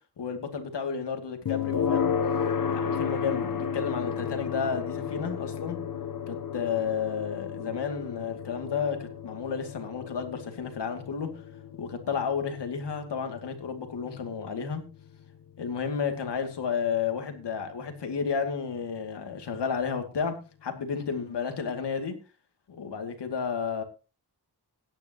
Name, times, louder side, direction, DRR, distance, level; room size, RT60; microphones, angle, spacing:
voice 1, 0.2-2.1 2.7-5.8 6.3-11.3 11.8-14.8 15.6-20.3 20.6-22.2 22.7-23.8, left 6 dB, 85° left, 5 dB, 2.6 m, -32 dB
sound 1, 1.5-16.4, left 7 dB, 55° left, 1.0 m, -33 dB
17.0 x 10.5 x 3.0 m, 0.31 s
wide cardioid pair, 95°, 40 cm